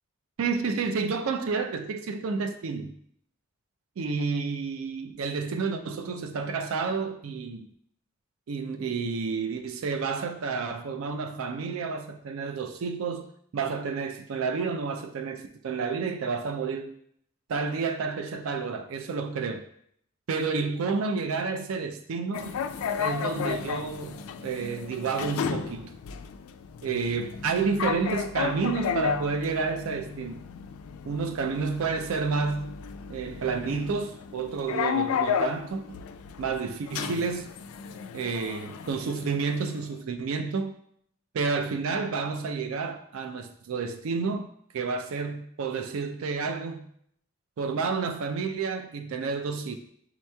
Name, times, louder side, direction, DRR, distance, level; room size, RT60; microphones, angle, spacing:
voice 1, 0.4-2.9 4.0-7.7 8.5-13.3 13.5-16.9 17.5-19.6 20.3-22.6 23.0-25.9 26.8-30.4 31.1-32.7 33.1-35.8 36.4-37.5 38.1-40.7 41.3-44.5 44.7-46.9 47.6-49.8, right 5 dB, 80° right, 0.4 m, -30 dB
sound 1, 22.3-39.9, left 7 dB, 85° left, 0.3 m, -34 dB
7.1 x 2.9 x 2.2 m
head